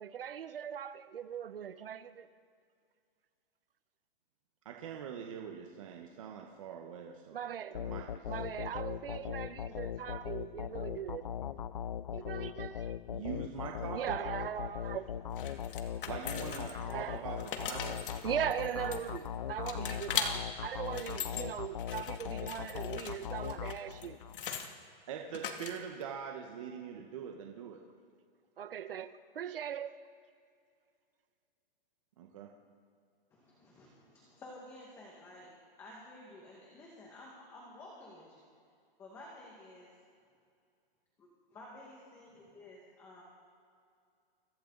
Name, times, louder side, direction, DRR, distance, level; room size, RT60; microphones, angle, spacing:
voice 1, 0.0-2.3 7.3-7.8 8.3-11.2 12.1-13.0 13.9-15.2 16.7-17.2 18.2-24.2 28.6-30.0, right 9 dB, 70° right, 1.2 m, -39 dB
voice 2, 4.6-7.4 7.7-8.3 13.1-14.2 16.1-18.0 25.1-27.8 32.2-32.5, right 7 dB, 35° right, 1.3 m, -43 dB
sound 1, 7.7-24.4, left 9 dB, 45° left, 0.5 m, -40 dB
sound 2, 15.4-16.9 17.3-19.3 19.7-20.3 20.8-21.4 21.8-24.7 25.3-26.0, left 7 dB, 60° left, 2.4 m, -40 dB
voice 3, 33.3-35.5 35.8-38.4 39.0-39.9 41.2-43.2, left 1 dB, 10° left, 1.8 m, -52 dB
30.0 x 23.5 x 4.0 m
hypercardioid pair, 180°, 29 cm